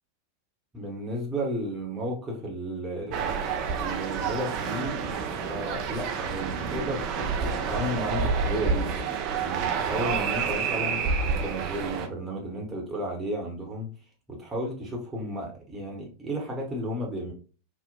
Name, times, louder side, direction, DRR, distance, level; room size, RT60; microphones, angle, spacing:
voice 1, 0.7-3.3 3.8-5.0 5.5-8.9 9.4-11.0 11.4-13.9 14.3-17.3, equal, 15° right, -1 dB, 0.9 m, -33 dB
sound 1, 3.1-12.1, right 5 dB, 40° right, 0.4 m, -29 dB
2.8 x 2.1 x 2.2 m, 0.37 s
figure-of-eight pair, 90°, 0 cm